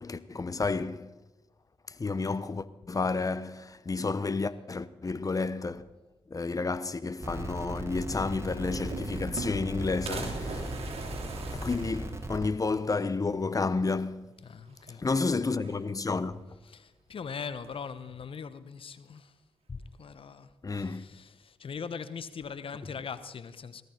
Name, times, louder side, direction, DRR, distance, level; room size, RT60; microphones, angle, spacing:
voice 1, 0.0-1.1 2.0-5.9 6.3-10.7 11.3-14.3 15.0-16.4 20.6-21.0, left 3 dB, 30° left, 1.0 m, -31 dB
sound 1, 7.2-12.5, right 1 dB, 25° right, 1.8 m, -37 dB
sound 2, 8.7-9.7 10.1-12.7 13.1-13.2 13.4-13.5 14.7-15.2 15.5-16.3 17.3-17.9, right 4 dB, 65° right, 3.2 m, -41 dB
voice 2, 14.4-15.0 16.6-19.4 20.0-23.8, left 6 dB, 55° left, 1.1 m, -41 dB
18.5 x 13.5 x 4.5 m
hypercardioid pair, 45°, 11 cm